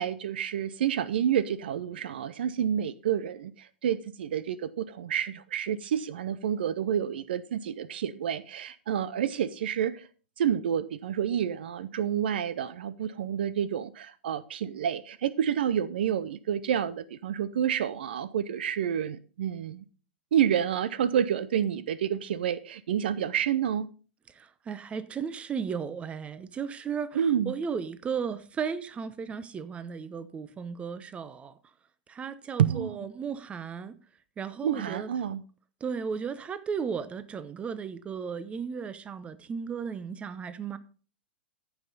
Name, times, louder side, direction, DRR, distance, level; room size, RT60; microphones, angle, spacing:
voice 1, 0.0-10.0 10.4-19.8 20.3-23.9 27.1-27.5 32.6-33.1 34.6-35.4, right 9 dB, 65° right, 0.5 m, -29 dB
voice 2, 24.3-31.6 32.1-33.9 34.4-35.1 35.8-40.8, right 6 dB, 20° right, 0.8 m, -35 dB
14.5 x 5.6 x 4.0 m
hypercardioid pair, 105°, 6 cm